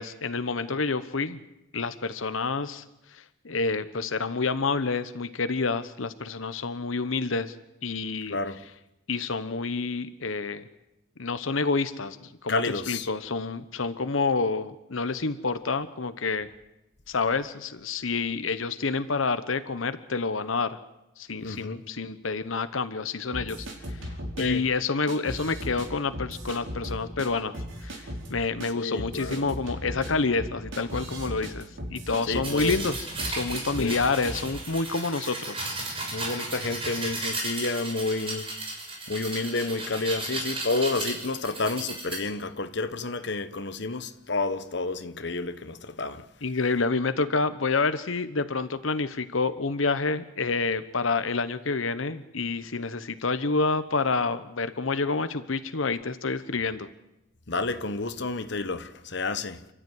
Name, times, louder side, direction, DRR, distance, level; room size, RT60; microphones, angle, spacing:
voice 1, 0.0-1.4 1.7-2.8 3.1-7.5 7.8-8.4 9.1-10.6 11.2-12.6 12.9-16.5 17.1-20.8 21.2-23.7 24.4-27.9 28.3-35.7 46.4-56.9, left 4 dB, 90° left, 1.0 m, -28 dB
voice 2, 8.3-8.6 12.5-13.1 21.4-21.9 24.4-24.6 28.8-29.5 32.2-32.8 33.8-34.0 36.1-38.5 39.1-46.2 57.5-59.6, left 3 dB, 60° left, 1.2 m, -30 dB
sound 1, 23.3-24.4 25.1-25.9 26.1-27.3 27.5-28.3 28.6-28.7 29.0-32.9 33.2-33.9 34.3-34.5, equal, 75° right, 5.0 m, -36 dB
sound 2, 32.4-42.2, right 2 dB, 30° right, 6.0 m, -34 dB
29.0 x 12.5 x 9.6 m
head